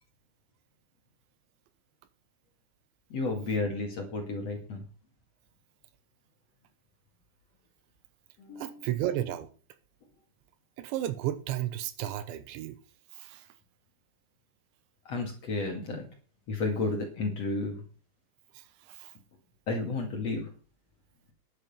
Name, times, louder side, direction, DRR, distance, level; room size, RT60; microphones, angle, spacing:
voice 1, 3.1-4.8 8.4-8.9 15.0-16.1 16.5-17.8 19.7-20.5, left 3 dB, 45° left, 2.6 m, -32 dB
voice 2, 8.6-9.5 10.8-12.8 13.1-13.5 18.6-19.1, right 13 dB, 80° right, 3.2 m, -33 dB
11.5 x 8.9 x 5.7 m
omnidirectional pair, 5.3 m